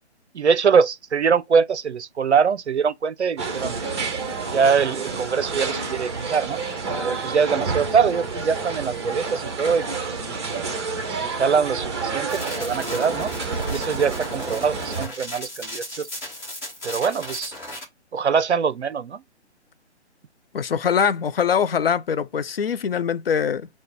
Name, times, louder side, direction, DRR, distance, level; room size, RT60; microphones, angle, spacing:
voice 1, 0.3-3.8 4.5-6.6 7.0-9.9 10.3-10.6 11.1-13.3 13.7-16.1 16.8-17.5 18.1-19.2, right 6 dB, 75° right, 0.5 m, -23 dB
sound 1, 3.4-15.1, right 4 dB, 25° right, 0.8 m, -29 dB
sound 2, 12.3-17.8, left 1 dB, 10° left, 1.1 m, -35 dB
voice 2, 20.5-23.7, left 7 dB, 55° left, 0.5 m, -23 dB
4.2 x 2.1 x 4.4 m
figure-of-eight pair, 140°, 35 cm